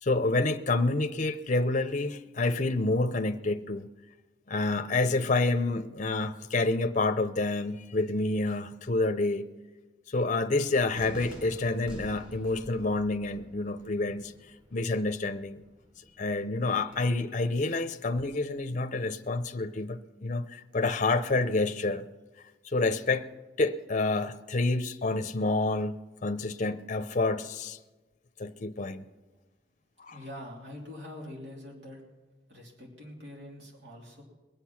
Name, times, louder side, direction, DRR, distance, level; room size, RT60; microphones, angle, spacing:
voice 1, 0.0-3.9 4.5-9.4 10.1-14.3 14.7-15.6 16.2-22.0 22.6-23.3 23.6-27.8 28.4-29.0 30.0-30.2, left 2 dB, 45° left, 9 dB, 0.7 m, -28 dB
Cheering / Fireworks, 10.9-16.9, equal, 30° right, 5.6 m, -49 dB
voice 2, 30.1-32.0 32.5-34.2, left 1 dB, 75° right, -2 dB, 3.1 m, -44 dB
22.0 x 8.2 x 5.9 m, 1.2 s
head